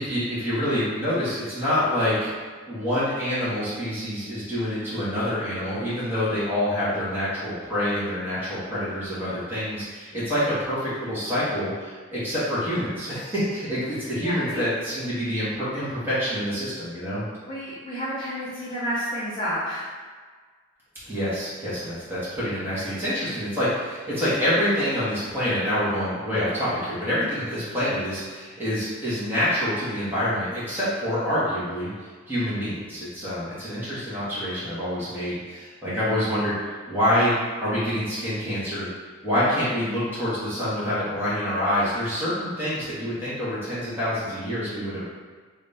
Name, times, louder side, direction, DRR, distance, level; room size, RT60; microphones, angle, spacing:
voice 1, 0.0-2.3 2.6-17.2 21.1-31.9 32.3-36.5 36.9-37.3 37.6-38.9 39.2-45.0, equal, 10° right, -11 dB, 1.4 m, -26 dB
voice 2, 14.2-14.6 17.5-19.8, equal, 25° left, -11 dB, 0.7 m, -30 dB
3.1 x 2.7 x 3.3 m, 1.5 s
head